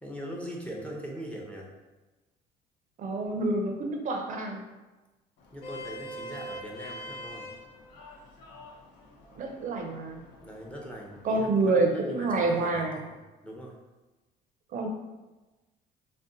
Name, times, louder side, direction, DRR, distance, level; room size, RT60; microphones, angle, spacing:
voice 1, 0.0-1.7 5.5-7.5 10.4-11.5 11.9-13.1 13.4-13.7, equal, 5° left, -2 dB, 0.5 m, -41 dB
voice 2, 3.0-4.6 9.3-10.2 11.2-13.0 14.7-14.9, right 3 dB, 50° right, 2 dB, 0.4 m, -27 dB
Vehicle horn car horn honking, 5.4-11.8, equal, 85° left, 0.5 m, -45 dB
2.5 x 2.1 x 3.8 m, 1.1 s
cardioid pair, 110°, 17 cm